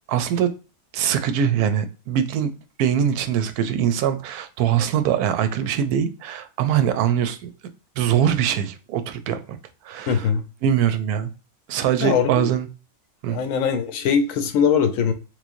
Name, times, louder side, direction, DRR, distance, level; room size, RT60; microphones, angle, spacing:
voice 1, 0.1-0.5 0.9-7.5 8.0-9.6 9.8-10.3 10.6-11.3 11.7-12.7 13.2-13.4, right 9 dB, 85° right, 1.1 m, -22 dB
voice 2, 10.1-10.4 12.0-12.5 13.3-15.1, left 7 dB, 70° left, 0.9 m, -21 dB
3.6 x 3.1 x 2.5 m
omnidirectional pair, 1.6 m